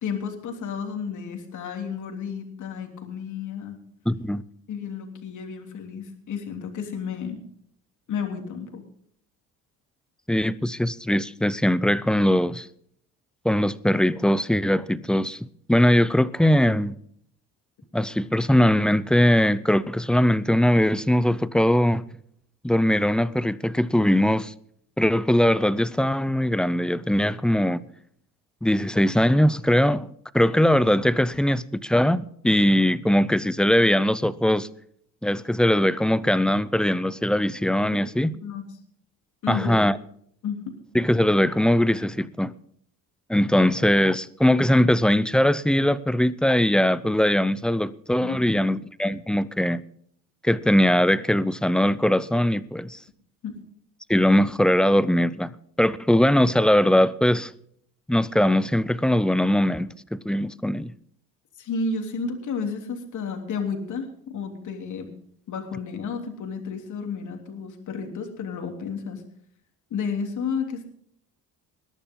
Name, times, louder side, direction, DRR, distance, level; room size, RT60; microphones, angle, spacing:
voice 1, 0.0-3.8 4.7-7.4 8.1-8.8 38.4-38.6 39.4-39.7 40.4-40.7 48.1-48.7 53.4-53.5 61.6-65.1 65.5-69.2 69.9-70.9, left 5 dB, 55° left, 3.3 m, -32 dB
voice 2, 4.1-4.4 10.3-12.7 13.4-15.4 15.7-17.0 17.9-22.0 22.6-24.5 25.0-27.9 28.6-30.1 30.3-34.7 35.2-38.3 39.5-40.0 40.9-42.5 43.3-49.8 50.4-53.0 54.1-57.5 58.1-60.9, left 1 dB, ahead, 0.5 m, -21 dB
21.0 x 11.5 x 3.8 m
cardioid pair, 120°, 35 cm